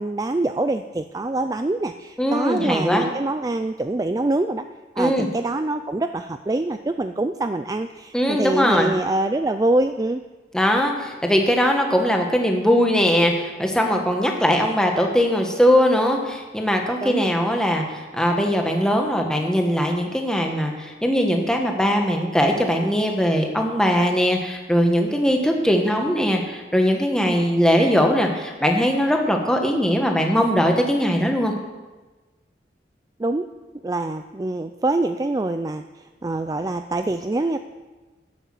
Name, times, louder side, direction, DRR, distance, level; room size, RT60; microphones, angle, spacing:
voice 1, 0.0-4.6 5.0-10.2 17.0-17.3 27.3-27.5 33.2-33.5 33.8-37.6, right 2 dB, 20° right, 9 dB, 0.3 m, -25 dB
voice 2, 2.2-3.0 5.0-5.3 8.1-8.9 10.5-31.5, equal, 5° left, 2 dB, 1.3 m, -20 dB
11.5 x 8.1 x 7.6 m, 1.3 s
head